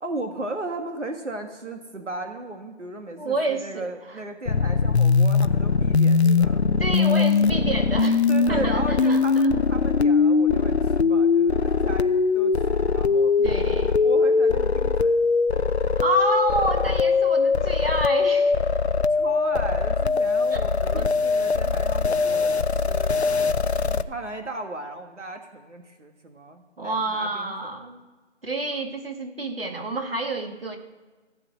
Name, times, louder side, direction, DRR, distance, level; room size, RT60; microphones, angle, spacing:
voice 1, 0.0-6.6 6.9-7.3 8.3-13.3 14.0-15.3 19.1-23.1 23.8-27.7, right 2 dB, 80° right, 5 dB, 1.9 m, -36 dB
voice 2, 3.2-4.2 6.8-8.2 8.5-9.5 13.4-14.0 16.0-18.6 20.5-20.6 20.9-21.0 26.8-28.0 28.4-30.8, right 2 dB, 55° right, 5 dB, 1.8 m, -28 dB
sound 1, 4.5-24.0, left 4 dB, 65° left, 0.7 m, -21 dB
15.0 x 8.0 x 7.7 m, 1.3 s
figure-of-eight pair, 175°, 35 cm